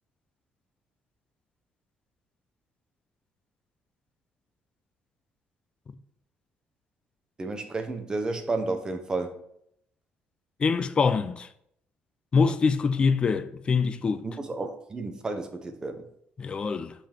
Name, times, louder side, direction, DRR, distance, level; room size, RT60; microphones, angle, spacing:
voice 1, 7.4-9.4 14.2-16.1, right 3 dB, 20° right, 0.7 m, -32 dB
voice 2, 10.6-11.5 12.3-14.3 16.4-16.9, left 5 dB, 25° left, 0.4 m, -24 dB
5.7 x 5.2 x 4.3 m
cardioid pair, 175°, 4 cm